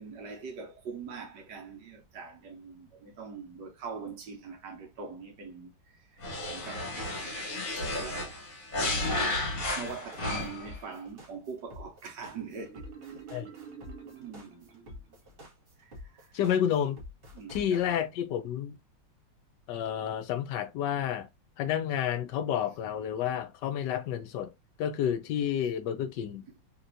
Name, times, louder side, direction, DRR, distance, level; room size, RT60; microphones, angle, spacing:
voice 1, 0.0-6.0 6.5-6.9 7.8-8.5 8.7-13.4 14.2-14.7 15.8-16.3 17.3-17.8 22.2-22.3, right 5 dB, 70° right, 1.5 m, -43 dB
sound 1, 6.2-10.8, left 2 dB, 50° left, 1.7 m, -33 dB
sound 2, 9.6-18.0, left 2 dB, 35° right, 1.1 m, -47 dB
Marimba xylophone, 12.6-15.3, right 7 dB, 90° right, 1.8 m, -48 dB
voice 2, 16.3-17.0 17.5-18.8 19.7-21.3 21.6-24.5 24.8-26.4, left 9 dB, 75° left, 1.2 m, -30 dB
3.5 x 2.9 x 2.6 m
omnidirectional pair, 2.0 m